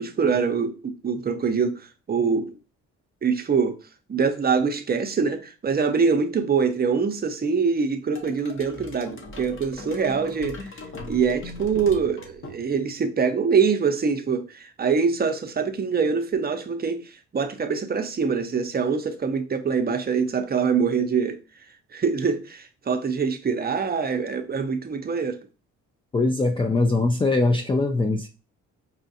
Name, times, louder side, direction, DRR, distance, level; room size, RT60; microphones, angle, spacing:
voice 1, 0.0-2.6 3.2-3.8 4.1-10.7 11.1-21.4 21.9-25.4, right 5 dB, 30° right, 0.6 m, -24 dB
sound 1, 8.2-13.0, left 2 dB, 45° left, 1.0 m, -39 dB
voice 2, 26.1-28.3, left 2 dB, 15° left, 0.4 m, -22 dB
5.5 x 2.4 x 2.7 m
cardioid pair, 90°, 30 cm